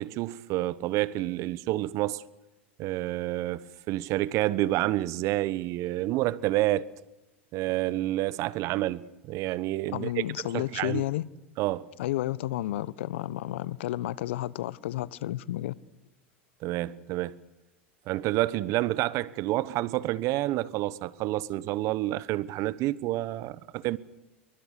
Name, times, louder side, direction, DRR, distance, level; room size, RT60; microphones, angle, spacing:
voice 1, 0.0-2.2 2.8-6.9 7.5-10.2 10.5-11.0 11.6-11.9 16.6-17.4 18.1-24.0, right 16 dB, 50° right, 1.1 m, -29 dB
voice 2, 9.9-11.3 12.0-15.8, left 15 dB, 70° left, 1.0 m, -31 dB
28.5 x 23.5 x 6.7 m
hypercardioid pair, 90°, 7 cm